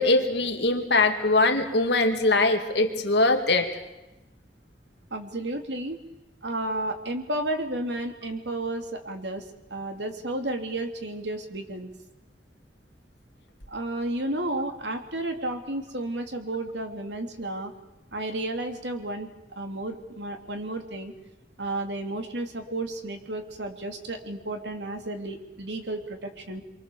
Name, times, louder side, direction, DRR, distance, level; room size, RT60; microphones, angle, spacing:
voice 1, 0.0-3.7, left 2 dB, 75° left, 4 dB, 2.5 m, -22 dB
voice 2, 5.1-6.0 6.4-11.9 13.7-17.7 18.1-19.3 19.5-21.1 21.6-26.6, right 1 dB, 85° right, 5 dB, 2.9 m, -32 dB
28.0 x 23.5 x 7.1 m, 0.96 s
head